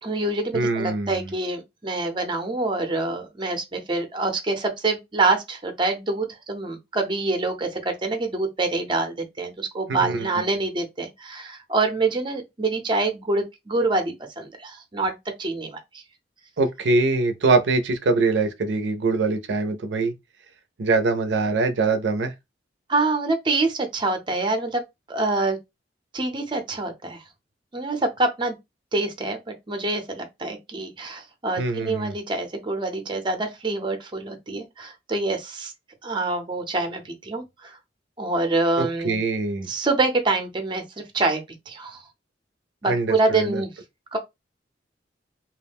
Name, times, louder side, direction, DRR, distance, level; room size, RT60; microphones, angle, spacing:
voice 1, 0.0-15.1 15.4-16.0 22.9-24.8 25.1-25.6 26.1-27.2 27.7-28.5 28.9-35.7 36.0-37.8 38.2-39.2 39.7-42.0 42.8-43.7 44.1-44.2, right 3 dB, 25° right, 0.6 m, -26 dB
voice 2, 0.5-1.2 10.0-10.3 16.6-20.1 20.8-22.3 31.6-32.1 38.8-39.7 42.9-43.6, right 3 dB, 75° right, 0.4 m, -23 dB
2.4 x 2.1 x 3.4 m
head